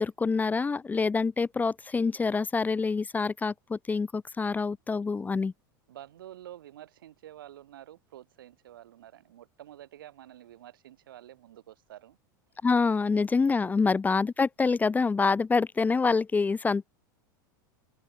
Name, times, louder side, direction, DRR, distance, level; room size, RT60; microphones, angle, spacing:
voice 1, 0.0-5.5 12.6-16.8, left 4 dB, 15° left, 0.5 m, -26 dB
voice 2, 5.9-12.2 13.6-13.7, right 12 dB, 80° right, 5.5 m, -49 dB
hypercardioid pair, 100°, 11 cm